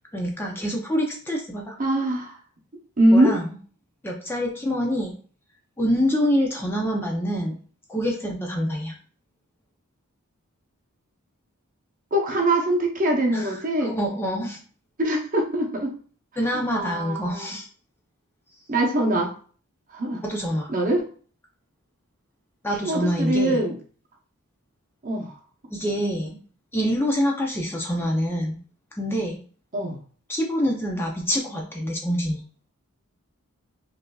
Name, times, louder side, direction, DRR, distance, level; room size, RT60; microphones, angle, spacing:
voice 1, 0.1-1.8 3.1-3.5 4.0-5.1 5.8-7.6 7.9-8.9 13.3-13.5 13.8-14.6 16.4-17.7 20.2-20.7 22.6-23.6 25.7-26.4 26.7-28.6 28.9-29.4 30.3-32.4, equal, 10° left, 0 dB, 0.5 m, -26 dB
voice 2, 1.8-2.4 3.0-3.3 12.1-13.9 15.0-15.9 16.5-17.5 18.7-19.3 19.9-20.2 20.7-21.1 22.8-23.8 25.0-25.3 29.7-30.0, right 1 dB, 40° right, 2 dB, 0.8 m, -23 dB
5.3 x 2.6 x 2.3 m, 0.42 s
head